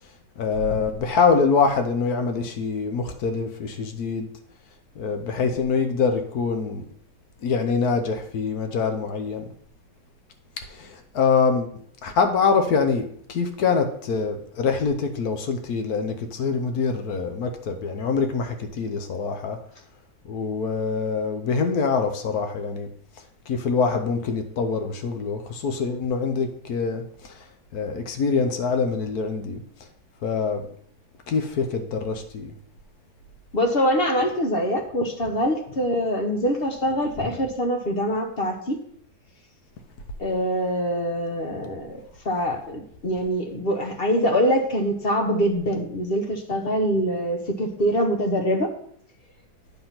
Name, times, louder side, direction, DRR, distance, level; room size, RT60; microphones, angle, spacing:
voice 1, 0.4-4.3 5.0-6.8 7.4-9.5 10.7-19.6 20.3-22.9 23.5-27.3 27.7-29.6 30.2-30.7 31.3-32.5, left 5 dB, 70° left, 6 dB, 1.4 m, -24 dB
voice 2, 33.5-38.8 40.2-48.7, equal, 45° left, 3 dB, 1.0 m, -24 dB
9.5 x 3.6 x 5.8 m, 0.63 s
omnidirectional pair, 1.7 m